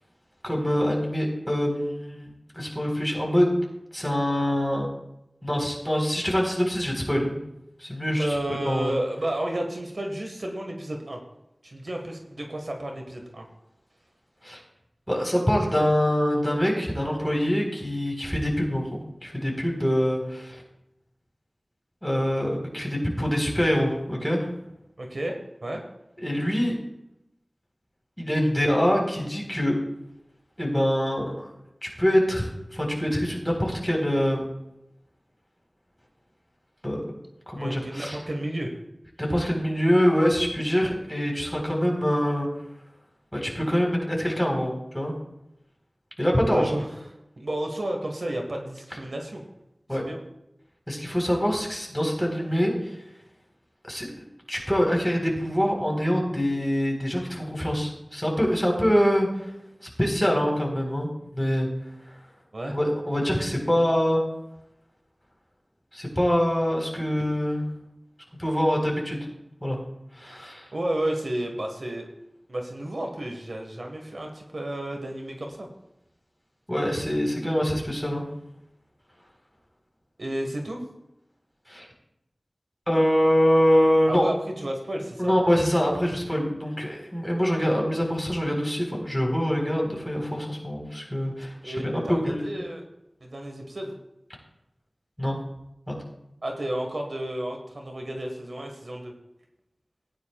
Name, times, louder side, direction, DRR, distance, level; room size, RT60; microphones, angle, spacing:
voice 1, 0.4-2.3 2.5-3.6 3.9-4.9 5.4-7.4 7.8-8.4 8.6-8.9 14.4-14.6 15.1-20.6 22.0-24.5 26.2-26.8 28.2-29.8 30.6-31.5 31.8-34.5 36.8-37.0 37.5-38.2 39.2-42.5 43.3-45.1 46.2-46.7 49.9-50.0 50.9-53.0 53.9-54.2 54.5-59.3 59.8-61.7 62.7-64.2 65.9-67.6 68.4-69.2 69.6-69.8 70.1-70.7 76.7-78.2 81.7-81.9 82.9-84.3 85.2-92.6 95.2-95.3 95.9-96.0, equal, 5° left, 0 dB, 4.3 m, -24 dB
voice 2, 8.2-11.2 11.6-13.5 25.0-25.3 25.6-25.8 37.6-38.7 46.5-46.9 47.4-49.4 49.9-50.2 62.5-62.8 70.7-72.1 72.5-75.7 80.2-80.8 84.1-85.3 91.6-92.8 93.2-94.0 96.4-99.1, right 1 dB, 70° right, 2 dB, 1.6 m, -31 dB
17.5 x 9.6 x 2.4 m, 0.86 s
wide cardioid pair, 40°, 0 cm